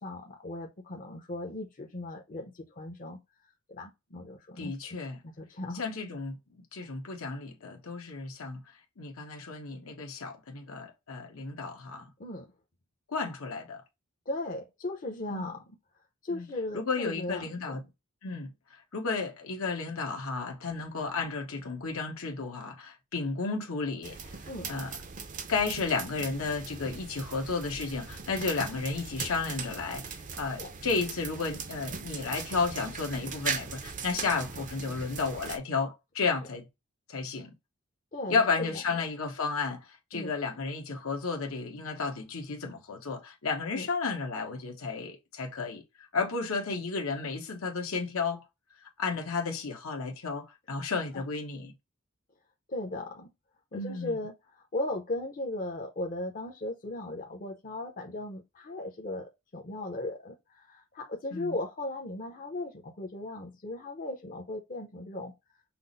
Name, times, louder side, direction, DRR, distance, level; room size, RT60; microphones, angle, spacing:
voice 1, 0.0-3.2 3.7-5.8 12.2-12.5 14.3-15.6 16.2-17.8 24.5-24.7 30.6-30.7 38.1-38.8 40.1-40.3 43.7-43.9 51.1-51.2 52.7-53.3 53.7-65.3, left 2 dB, 40° left, 0.7 m, -37 dB
voice 2, 4.6-5.2 5.8-6.4 6.7-8.6 9.0-12.0 13.1-13.8 15.3-15.5 16.3-16.5 16.7-17.8 18.2-18.5 18.9-24.2 24.6-24.9 25.5-36.6 37.1-37.5 38.3-39.8 40.1-45.8 46.1-48.4 49.0-51.7 53.7-54.2 61.3-61.5, left 4 dB, 80° left, 1.1 m, -33 dB
sound 1, 24.0-35.6, right 5 dB, 35° right, 0.5 m, -39 dB
5.8 x 2.0 x 3.9 m
head